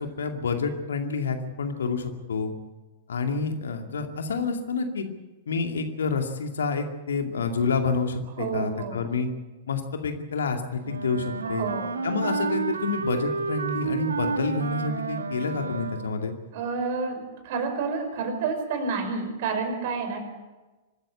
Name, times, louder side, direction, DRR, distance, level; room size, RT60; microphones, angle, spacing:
voice 1, 0.0-2.5 3.1-5.1 5.5-9.3 9.7-11.7 12.0-16.3, left 4 dB, 65° left, 5 dB, 2.4 m, -28 dB
voice 2, 8.4-9.0 11.4-12.0 16.5-20.2, right 4 dB, 50° right, 6 dB, 4.9 m, -29 dB
Wind instrument woodwind instrument, 10.8-16.3, right 4 dB, 75° right, 1.4 m, -30 dB
24.5 x 13.5 x 8.5 m, 1.1 s
figure-of-eight pair, 100°, 0 cm